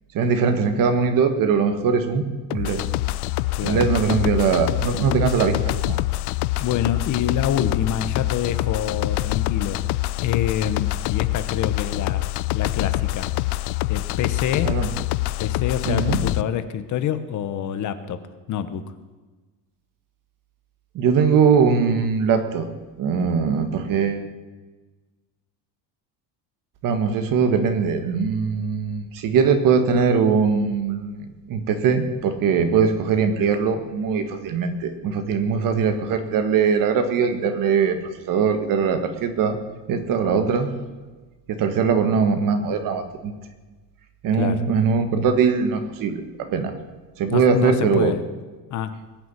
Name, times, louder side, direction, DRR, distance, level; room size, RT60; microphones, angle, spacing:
voice 1, 0.1-2.3 2.5-2.8 3.6-6.0 14.6-14.9 15.8-16.2 20.9-22.7 23.0-24.3 26.8-38.0 38.2-39.6 39.9-40.7 41.5-43.3 44.2-46.7 47.2-48.1, right 6 dB, 50° right, 8 dB, 1.7 m, -21 dB
sound 1, 2.5-16.4, left 19 dB, 75° left, 0.6 m, -25 dB
voice 2, 3.5-3.8 6.6-9.8 10.2-13.3 13.9-14.8 15.4-18.2 18.5-18.9 44.4-44.6 47.3-48.2 48.7-49.0, left 9 dB, 45° left, 11 dB, 1.0 m, -26 dB
20.5 x 7.1 x 9.6 m, 1.3 s
cardioid pair, 180°, 41 cm